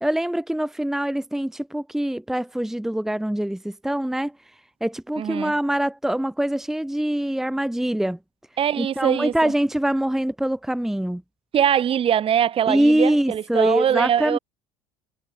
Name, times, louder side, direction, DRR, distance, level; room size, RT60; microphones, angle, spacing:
voice 1, 0.0-4.3 4.8-8.2 8.8-11.2 12.7-14.4, right 1 dB, 5° right, 1.3 m, -24 dB
voice 2, 5.2-5.5 8.6-9.5 11.5-14.4, right 9 dB, 40° right, 2.3 m, -22 dB
figure-of-eight pair, 65°, 14 cm